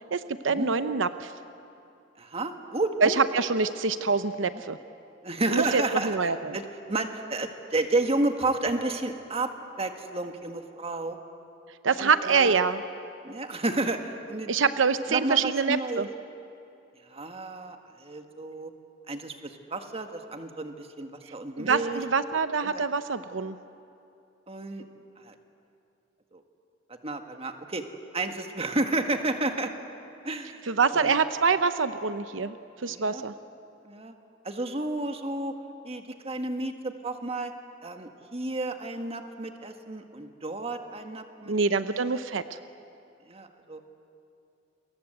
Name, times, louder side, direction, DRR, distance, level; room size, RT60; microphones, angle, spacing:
voice 1, 0.1-1.3 3.0-4.8 5.5-6.6 11.8-12.8 14.5-16.1 21.6-23.6 30.7-33.3 41.5-42.6, right 5 dB, 90° right, 11 dB, 0.8 m, -25 dB
voice 2, 2.2-3.2 4.5-4.6 5.2-6.2 6.5-6.6 6.9-9.5 9.8-11.2 11.9-12.5 13.2-14.5 15.1-16.1 17.1-18.7 19.1-22.0 22.6-22.8 24.5-24.9 25.2-25.3 26.3-26.4 27.0-27.8 28.1-29.7 30.2-30.6 30.9-31.2 32.9-33.2 33.8-34.1 34.4-35.5 35.8-37.5 37.8-41.5 41.8-42.0 42.3-42.4 43.3-43.8, right 2 dB, 30° right, 6 dB, 1.7 m, -31 dB
29.0 x 22.5 x 8.0 m, 2.7 s
head